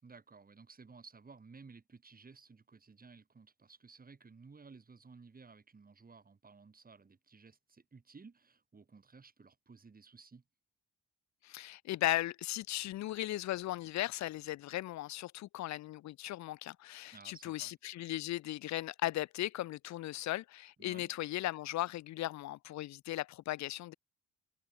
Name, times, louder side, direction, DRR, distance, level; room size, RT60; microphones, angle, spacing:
voice 1, 0.0-10.4 17.1-17.7 20.8-21.1, right 4 dB, 30° right, 4.9 m, -56 dB
voice 2, 11.4-23.9, left 15 dB, 65° left, 0.6 m, -37 dB
cardioid pair, 90°, 30 cm